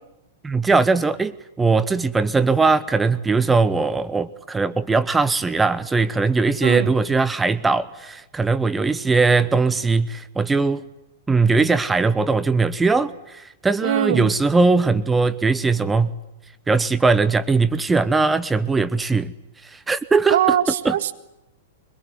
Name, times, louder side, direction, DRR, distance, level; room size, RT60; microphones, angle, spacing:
voice 1, 0.4-10.8 11.3-16.1 16.7-19.3 19.6-20.4 20.8-20.9, right 4 dB, 10° right, 1.0 m, -20 dB
voice 2, 6.6-6.9 13.8-14.3 20.3-21.1, right 10 dB, 60° right, 1.8 m, -21 dB
24.0 x 22.5 x 9.6 m
figure-of-eight pair, 100°, 0 cm